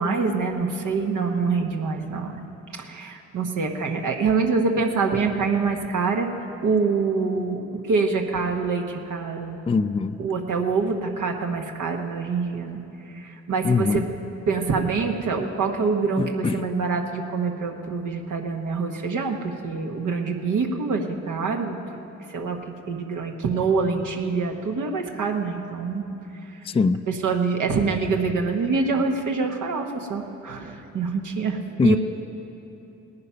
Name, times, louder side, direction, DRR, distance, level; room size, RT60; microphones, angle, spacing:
voice 1, 0.0-6.3 6.6-9.6 10.2-14.1 14.5-22.6 22.9-26.0 26.4-26.7 27.1-32.0, right 4 dB, 75° right, 2 dB, 1.3 m, -25 dB
voice 2, 9.7-10.2 13.6-14.0 16.2-16.6 26.6-27.0 31.8-32.0, left 4 dB, 20° left, 12 dB, 0.4 m, -22 dB
18.0 x 9.6 x 5.7 m, 2.9 s
supercardioid pair, 55°, 31 cm